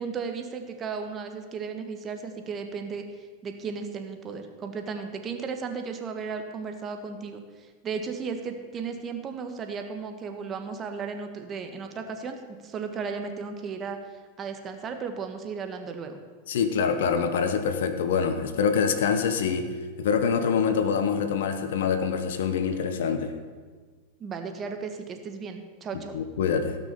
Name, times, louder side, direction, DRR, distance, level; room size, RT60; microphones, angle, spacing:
voice 1, 0.0-3.0 3.4-14.0 14.4-16.2 24.2-26.2, right 5 dB, 30° right, 6 dB, 1.5 m, -35 dB
voice 2, 16.5-23.3 26.1-26.8, left 6 dB, 75° left, 8 dB, 1.3 m, -25 dB
16.5 x 6.1 x 6.9 m, 1.5 s
hypercardioid pair, 115°, 0 cm